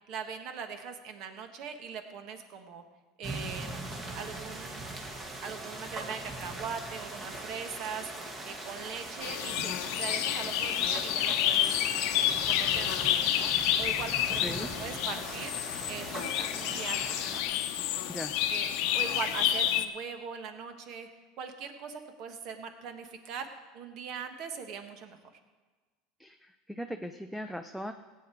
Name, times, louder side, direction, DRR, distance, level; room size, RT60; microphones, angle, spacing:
voice 1, 0.1-2.8 3.2-3.7 4.1-4.8 5.4-8.1 8.4-11.8 12.1-13.5 13.8-15.6 15.9-17.4 18.5-21.1 21.4-23.5 23.7-25.2, right 6 dB, 50° right, 7 dB, 1.4 m, -41 dB
sound 1, 3.2-17.4, right 2 dB, 25° right, 1.7 m, -41 dB
sound 2, 9.2-19.9, left 11 dB, 65° left, 0.8 m, -29 dB
voice 2, 14.4-14.7 18.1-18.3 26.2-27.9, equal, ahead, 7 dB, 0.5 m, -39 dB
17.0 x 8.8 x 4.5 m, 1.3 s
supercardioid pair, 140°, 0 cm